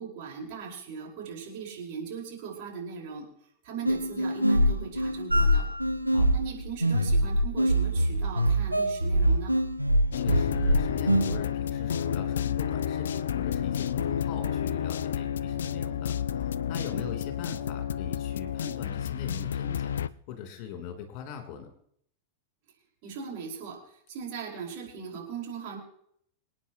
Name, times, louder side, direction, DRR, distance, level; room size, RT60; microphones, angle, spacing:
voice 1, 0.0-3.3 3.6-5.7 6.3-9.5 16.9-17.1 23.0-23.8 24.1-25.8, right 6 dB, 45° right, -2 dB, 5.0 m, -39 dB
sound 1, 3.9-11.4, equal, 90° right, 0.8 m, -24 dB
sound 2, 10.1-20.1, left 9 dB, 65° left, 0.5 m, -30 dB
voice 2, 10.1-20.0 20.3-21.7, left 7 dB, 45° left, 4 dB, 3.5 m, -41 dB
26.5 x 9.4 x 3.0 m, 0.68 s
figure-of-eight pair, 90°, 0 cm